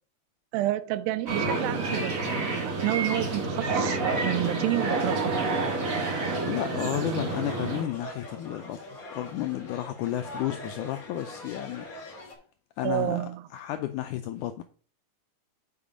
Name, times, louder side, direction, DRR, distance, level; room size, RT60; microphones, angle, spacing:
voice 1, 0.5-2.1 2.5-5.5 12.8-13.4, right 15 dB, 85° right, 2.3 m, -29 dB
sound 1, 1.3-7.8, right 3 dB, 50° right, 0.9 m, -28 dB
voice 2, 6.5-8.8 9.1-12.1 12.8-14.6, left 13 dB, 85° left, 1.7 m, -32 dB
sound 2, 7.1-12.3, left 1 dB, 30° left, 2.1 m, -43 dB
8.6 x 4.5 x 5.0 m
omnidirectional pair, 4.1 m